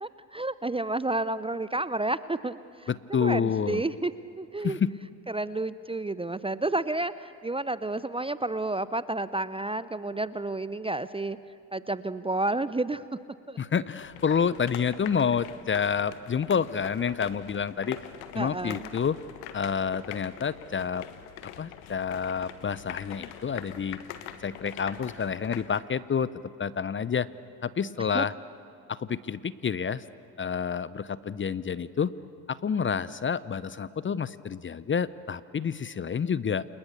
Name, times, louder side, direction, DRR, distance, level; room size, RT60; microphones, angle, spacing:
voice 1, 0.0-2.9 3.2-4.1 4.4-4.8 5.3-11.4 11.7-13.0 13.5-13.6 18.3-18.9 28.1-28.3, right 2 dB, 10° right, 15 dB, 0.7 m, -30 dB
voice 2, 2.9-3.8 4.6-4.9 13.6-18.0 18.3-19.2 19.5-21.0 21.6-24.0 24.4-27.3 27.6-28.3 28.9-30.0 30.4-32.1 32.5-36.7, left 6 dB, 25° left, 18 dB, 0.8 m, -29 dB
sound 1, 14.0-25.8, left 11 dB, 70° left, 1.6 m, -44 dB
29.5 x 28.0 x 6.9 m, 2.5 s
hypercardioid pair, 55°, 46 cm